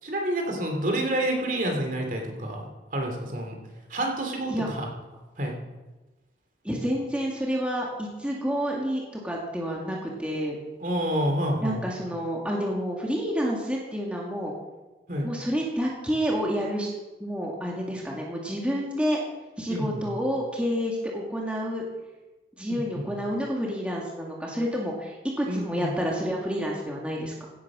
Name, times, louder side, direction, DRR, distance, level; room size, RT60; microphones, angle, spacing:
voice 1, 0.0-3.5 3.9-4.9 5.4-5.6 10.8-11.8 15.1-15.3 19.7-20.1 22.7-23.1 25.5-25.9, right 1 dB, 45° right, 2 dB, 3.0 m, -28 dB
voice 2, 6.6-10.6 11.6-14.5 15.2-16.9 17.2-19.2 19.6-21.8 22.6-27.3, equal, 5° right, -2 dB, 2.2 m, -29 dB
16.5 x 9.5 x 6.2 m, 1.1 s
head